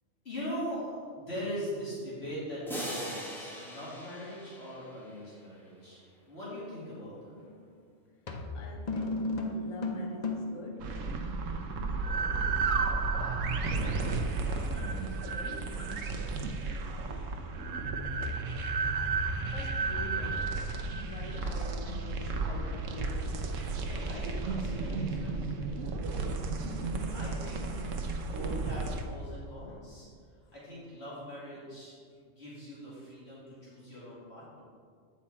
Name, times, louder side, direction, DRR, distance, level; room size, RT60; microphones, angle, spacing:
voice 1, 0.2-0.9 1.1-6.0 6.3-7.4 12.0-12.6 13.1-13.5 13.8-16.5 23.8-26.8 27.1-30.1 30.5-31.9 32.4-34.6, equal, 55° left, -9 dB, 2.6 m, -42 dB
sound 1, 2.7-5.3, right 1 dB, ahead, 1.0 m, -40 dB
sound 2, 7.4-7.6 8.3-10.7, left 2 dB, 40° left, 0.7 m, -34 dB
voice 2, 8.5-11.0 13.0-13.2 17.6-18.4 19.5-20.6 20.9-23.7 26.6-27.3, left 2 dB, 75° left, 0 dB, 1.2 m, -45 dB
sound 3, 10.8-29.0, right 3 dB, 85° right, 1.1 m, -33 dB
8.2 x 5.9 x 4.3 m, 2.1 s
omnidirectional pair, 1.3 m